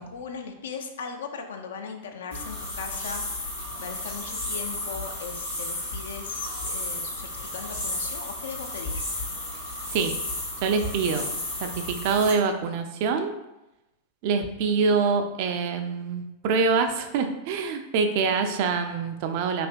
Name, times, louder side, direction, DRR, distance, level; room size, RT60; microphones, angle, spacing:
voice 1, 0.0-3.2 3.8-9.0, left 5 dB, 60° left, 4 dB, 0.3 m, -38 dB
sound 1, 2.3-12.3, left 1 dB, 80° left, 1.2 m, -33 dB
voice 2, 10.6-13.3 14.2-19.7, right 5 dB, 45° right, 6 dB, 0.3 m, -25 dB
3.2 x 2.7 x 2.4 m, 0.94 s
figure-of-eight pair, 90°, 0 cm